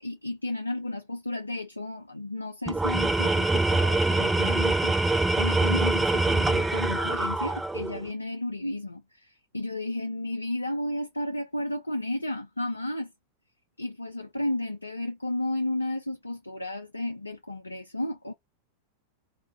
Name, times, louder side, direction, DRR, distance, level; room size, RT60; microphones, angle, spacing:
voice 1, 0.0-13.1 13.8-18.3, left 1 dB, 80° left, 0.4 m, -33 dB
Tools, 2.7-8.0, right 2 dB, 5° right, 0.4 m, -24 dB
2.4 x 2.1 x 3.8 m
figure-of-eight pair, 90°, 0 cm